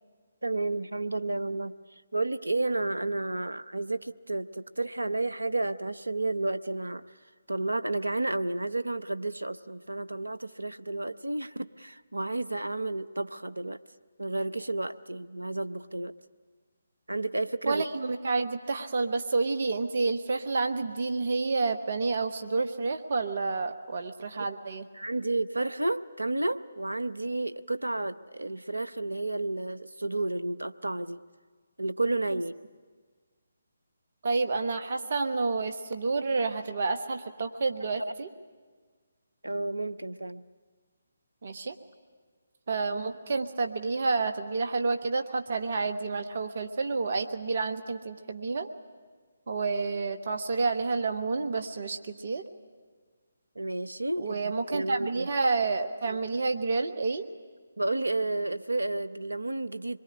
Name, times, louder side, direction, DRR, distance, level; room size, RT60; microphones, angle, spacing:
voice 1, 0.4-7.0 7.5-13.8 14.2-16.1 17.1-17.8 24.4-24.5 24.9-31.2 31.8-32.5 39.4-40.4 53.6-55.3 57.8-60.0, right 2 dB, 80° right, 14 dB, 0.8 m, -31 dB
voice 2, 17.7-24.8 32.3-32.4 34.2-38.3 41.4-41.8 42.7-48.7 49.5-52.4 54.2-57.2, right 3 dB, 50° right, 7 dB, 1.3 m, -29 dB
25.5 x 22.0 x 9.9 m, 1.5 s
figure-of-eight pair, 145°, 0 cm